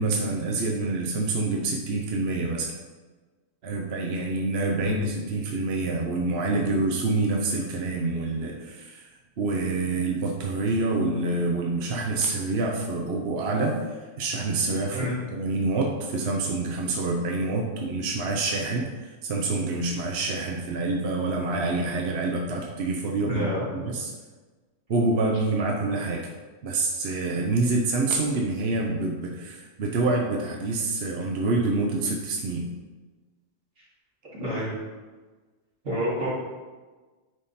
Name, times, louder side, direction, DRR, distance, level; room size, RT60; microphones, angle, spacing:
voice 1, 0.0-2.7 3.6-9.1 9.4-23.5 23.7-24.1 24.9-26.3 26.6-32.7, right 3 dB, 60° right, 0 dB, 1.0 m, -27 dB
voice 2, 23.3-23.6 34.3-34.8 35.8-36.3, equal, 80° right, -8 dB, 3.0 m, -28 dB
9.6 x 3.7 x 4.2 m, 1.3 s
omnidirectional pair, 1.3 m